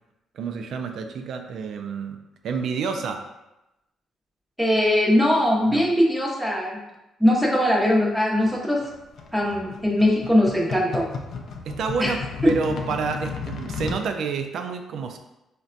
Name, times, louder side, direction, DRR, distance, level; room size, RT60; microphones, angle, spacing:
voice 1, 0.3-2.2 2.4-3.2 5.7-5.9 11.7-12.2 12.4-15.2, right 5 dB, 70° right, 6 dB, 0.3 m, -29 dB
voice 2, 4.6-6.8 7.2-8.8 9.3-11.1 12.0-12.1 12.4-12.5, left 1 dB, ahead, -3 dB, 0.7 m, -20 dB
sound 1, 8.4-14.0, left 4 dB, 65° left, 0.4 m, -34 dB
3.9 x 2.1 x 2.4 m, 0.95 s
cardioid pair, 90°, 0 cm